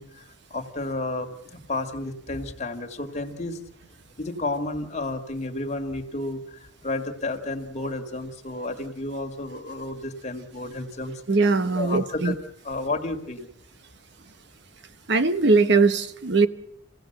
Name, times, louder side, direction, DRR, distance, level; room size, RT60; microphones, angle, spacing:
voice 1, 0.0-3.6 4.2-11.2 11.7-12.4 12.6-13.5, left 2 dB, 35° left, 2.0 m, -31 dB
voice 2, 11.3-12.3 15.1-16.5, right 3 dB, 60° right, 0.9 m, -20 dB
27.0 x 17.0 x 7.9 m
head